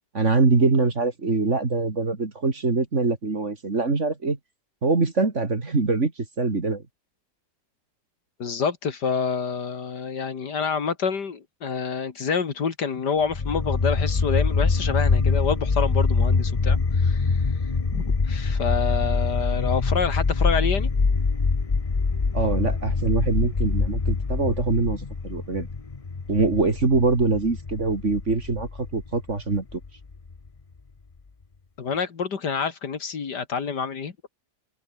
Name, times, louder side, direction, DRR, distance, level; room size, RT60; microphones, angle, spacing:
voice 1, 0.1-4.4 4.8-6.1 6.4-6.8 22.3-25.7 26.3-29.8, right 3 dB, 40° right, 3.0 m, -23 dB
voice 2, 8.4-17.4 17.9-20.9 31.8-34.1, left 6 dB, 70° left, 2.6 m, -27 dB
sound 1, 13.3-30.3, left 4 dB, 25° left, 0.9 m, -24 dB
omnidirectional pair, 1.9 m